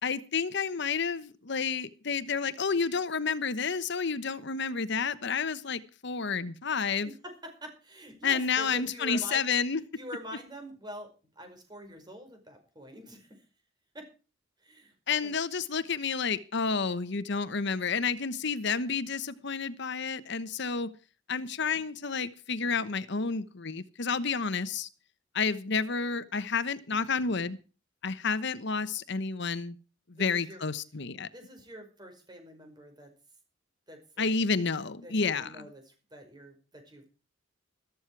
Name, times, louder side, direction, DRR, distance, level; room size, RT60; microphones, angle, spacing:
voice 1, 0.0-7.1 8.2-9.8 15.1-20.9 21.3-24.9 25.3-27.6 28.0-29.8 30.1-31.3 34.2-35.6, left 5 dB, 60° left, 15 dB, 1.1 m, -30 dB
voice 2, 7.1-9.5 10.0-13.4 13.9-14.1 14.6-15.3 30.1-30.6 31.3-33.1 33.9-34.3 35.0-37.1, equal, 20° right, 5 dB, 5.2 m, -46 dB
14.0 x 13.5 x 4.7 m, 0.35 s
head